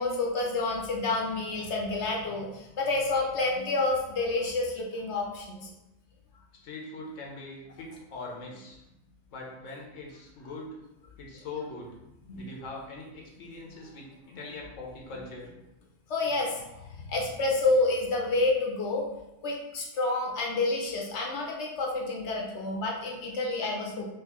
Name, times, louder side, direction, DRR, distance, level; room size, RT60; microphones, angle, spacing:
voice 1, 0.0-5.7 12.3-12.4 16.1-16.5 17.1-19.0 19.4-24.1, left 2 dB, 70° left, -1 dB, 1.0 m, -29 dB
voice 2, 6.6-8.8 9.3-10.8 11.2-11.9 12.3-15.5, left 3 dB, 90° left, -1 dB, 1.1 m, -42 dB
3.8 x 3.2 x 3.0 m, 0.92 s
omnidirectional pair, 1.3 m